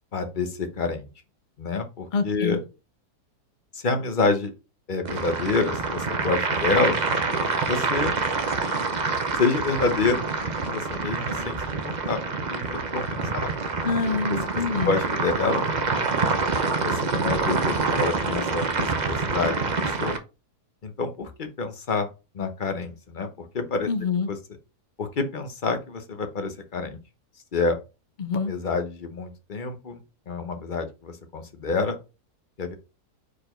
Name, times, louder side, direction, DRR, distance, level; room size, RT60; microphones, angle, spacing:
voice 1, 0.1-1.1 1.6-2.6 3.7-4.5 4.9-7.0 7.6-8.1 9.4-10.3 10.6-13.5 14.8-15.7 16.8-20.1 20.8-22.1 22.3-23.9 24.3-24.4 25.0-27.0 27.5-27.8 28.5-32.0 32.6-32.7, left 4 dB, 35° left, 7 dB, 0.9 m, -28 dB
voice 2, 2.1-2.6 13.8-15.0 23.9-24.3 28.2-28.5, left 4 dB, 75° left, 9 dB, 0.4 m, -26 dB
sound 1, 5.0-20.2, right 4 dB, 40° right, 0.6 m, -26 dB
5.0 x 4.5 x 4.3 m, 0.29 s
omnidirectional pair, 1.7 m